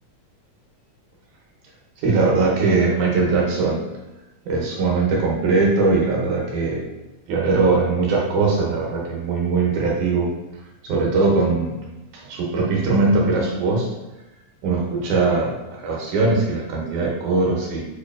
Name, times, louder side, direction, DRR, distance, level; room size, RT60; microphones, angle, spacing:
voice 1, 2.0-3.8 4.5-6.8 7.3-10.3 10.8-11.7 12.1-13.9 14.6-17.9, right 3 dB, 85° right, -1 dB, 2.3 m, -20 dB
6.4 x 2.4 x 2.2 m, 1.0 s
omnidirectional pair, 3.3 m